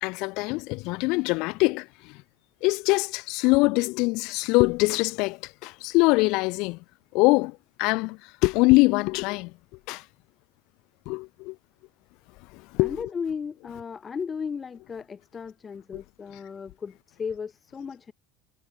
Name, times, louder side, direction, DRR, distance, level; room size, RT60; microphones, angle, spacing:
voice 1, 0.0-2.2 2.6-6.8 7.1-9.5 9.9-10.0 11.0-11.5 12.5-13.0 15.9-16.0, left 25 dB, 60° left, 1.6 m, -23 dB
voice 2, 12.8-18.1, left 6 dB, 30° left, 6.9 m, -35 dB
hypercardioid pair, 75°, 0 cm